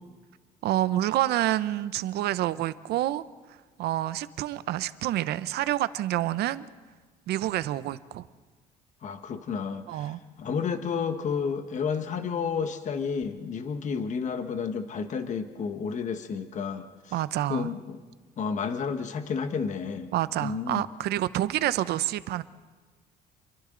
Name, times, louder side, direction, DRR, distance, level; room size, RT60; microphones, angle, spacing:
voice 1, 0.6-3.2 3.8-6.7 7.3-8.2 9.9-10.2 17.1-17.7 20.1-22.4, right 14 dB, 75° right, 15 dB, 0.8 m, -28 dB
voice 2, 9.0-17.2 17.5-18.0 18.4-20.1 20.4-20.8, left 6 dB, 45° left, 8 dB, 1.4 m, -31 dB
29.0 x 23.5 x 3.9 m, 1.4 s
cardioid pair, 110°, 17 cm